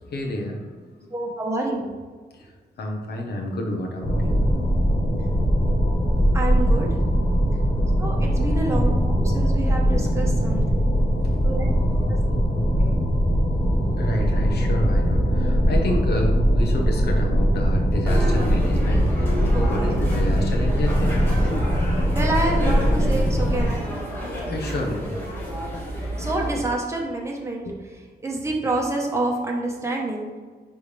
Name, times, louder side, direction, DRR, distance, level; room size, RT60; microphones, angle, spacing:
voice 1, 0.0-1.1 2.3-2.5 2.8-4.5 7.3-7.4 12.3-12.4 13.5-13.6 14.0-21.4 24.5-25.3 27.6-27.7, left 1 dB, 80° left, 1 dB, 1.1 m, -30 dB
voice 2, 1.1-1.9 6.3-6.9 8.0-10.6 11.4-11.7 12.8-12.9 19.5-20.0 22.1-23.9 24.2-24.6 26.2-27.7 28.2-30.4, right 2 dB, 15° right, -1 dB, 1.2 m, -28 dB
sound 1, 4.0-23.7, equal, 50° left, 1.4 m, -21 dB
sound 2, 18.1-26.6, equal, 15° left, 1.8 m, -30 dB
9.7 x 3.5 x 3.4 m, 1.5 s
wide cardioid pair, 125°, 17 cm